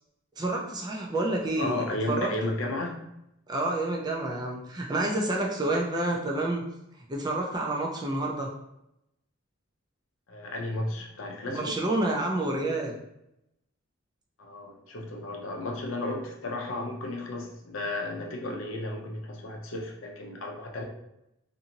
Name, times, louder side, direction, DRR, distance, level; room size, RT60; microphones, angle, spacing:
voice 1, 0.4-2.3 3.5-6.6 7.1-8.5 11.5-12.9, right 2 dB, 20° right, -1 dB, 0.4 m, -29 dB
voice 2, 1.6-3.0 10.3-11.8 14.4-20.8, left 2 dB, 70° left, 1 dB, 0.6 m, -33 dB
2.6 x 2.6 x 2.8 m, 0.84 s
head